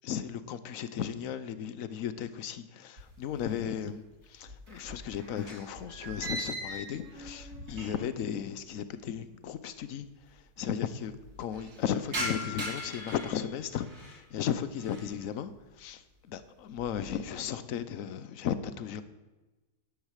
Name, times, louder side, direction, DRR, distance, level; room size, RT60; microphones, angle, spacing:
voice 1, 0.0-10.1 10.3-11.1 11.4-15.5 15.8-19.0, left 8 dB, 60° left, 1.0 m, -35 dB
sound 1, 3.0-3.8 4.1-8.2 8.5-8.6 9.5-9.6 9.7-9.8 10.1-10.6 11.0-14.2 14.6-15.2 15.6-16.0 16.4-17.3, equal, 60° right, 3.6 m, -41 dB
11.0 x 10.5 x 6.5 m
omnidirectional pair, 1.8 m